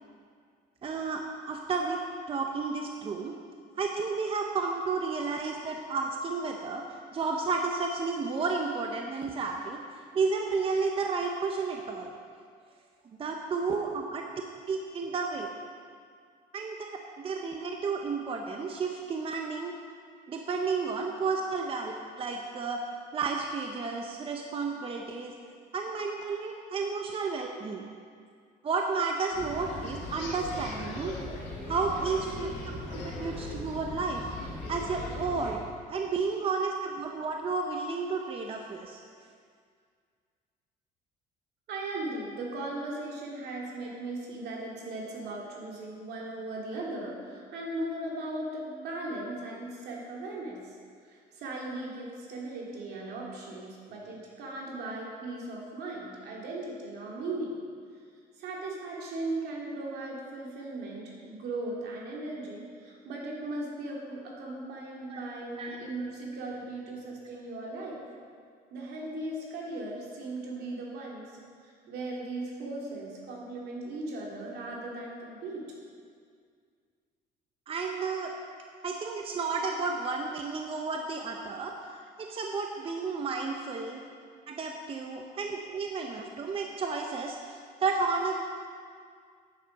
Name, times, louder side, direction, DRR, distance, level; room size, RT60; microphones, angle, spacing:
voice 1, 0.8-2.0 2.3-3.3 3.8-12.1 13.2-14.2 14.7-15.5 16.5-19.7 20.3-21.9 22.2-22.8 23.1-25.3 25.7-27.9 28.6-31.2 31.7-32.5 32.9-34.3 34.7-35.6 35.9-39.0 65.1-65.3 65.6-65.8 77.7-78.3 78.8-81.7 82.2-84.0 84.5-88.4, right 4 dB, 35° right, 2 dB, 0.7 m, -32 dB
sound 1, 29.3-35.5, left 2 dB, 90° left, 2.2 m, -39 dB
voice 2, 41.7-50.8 51.1-57.5 58.4-68.0 68.7-71.4 71.6-75.6 85.2-85.4, right 2 dB, 75° right, -3 dB, 2.5 m, -38 dB
9.2 x 7.2 x 5.3 m, 2.1 s
cardioid pair, 110°, 17 cm